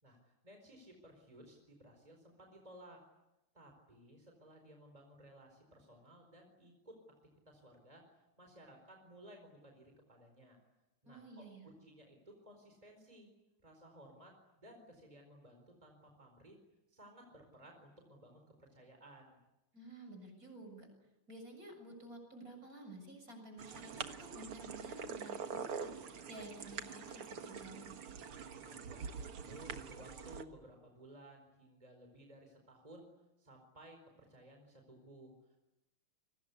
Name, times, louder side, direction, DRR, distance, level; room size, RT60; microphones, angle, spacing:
voice 1, 0.0-3.0 3.5-6.9 7.5-10.6 11.0-12.2 12.4-13.3 13.6-16.6 16.9-19.4 28.6-35.6, right 1 dB, 15° right, 3 dB, 4.6 m, -58 dB
voice 2, 11.1-11.7 19.7-20.9 21.3-27.9, right 1 dB, 40° right, 5 dB, 7.5 m, -52 dB
sound 1, 23.6-30.4, right 6 dB, 90° right, 2.5 m, -45 dB
29.0 x 23.5 x 8.4 m, 0.96 s
omnidirectional pair, 2.3 m